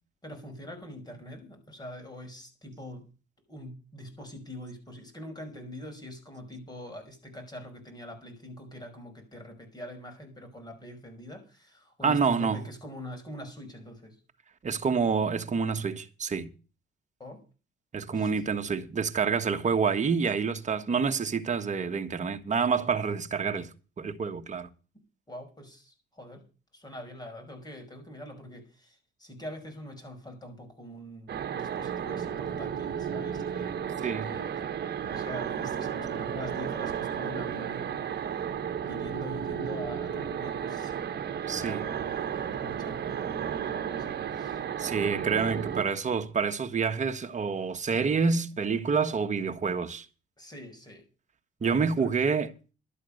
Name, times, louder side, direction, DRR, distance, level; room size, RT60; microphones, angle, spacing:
voice 1, 0.2-3.0 3.5-14.2 17.2-17.4 18.1-18.3 25.3-26.4 26.7-34.6 35.1-38.0 38.3-38.4 38.8-40.9 41.3-44.6 50.4-51.0 51.6-52.1, left 1 dB, 20° left, 5.5 m, -44 dB
voice 2, 12.0-12.6 14.6-16.5 17.9-23.7 24.0-24.7 34.0-34.3 41.5-41.8 44.8-50.0 51.6-52.7, right 5 dB, 35° right, 1.4 m, -28 dB
sound 1, 31.3-45.9, right 8 dB, 55° right, 1.2 m, -33 dB
12.0 x 8.6 x 6.5 m
cardioid pair, 90°, 20 cm